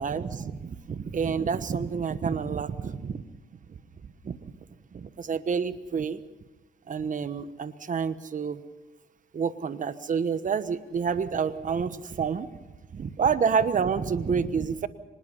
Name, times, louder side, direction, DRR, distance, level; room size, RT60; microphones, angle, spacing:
voice 1, 0.0-3.2 3.7-3.8 4.2-4.6 4.9-6.2 6.9-8.6 9.3-12.5 12.9-14.9, right 6 dB, 40° right, 13 dB, 1.2 m, -28 dB
24.5 x 20.0 x 5.6 m, 1.2 s
cardioid pair, 90°, 20 cm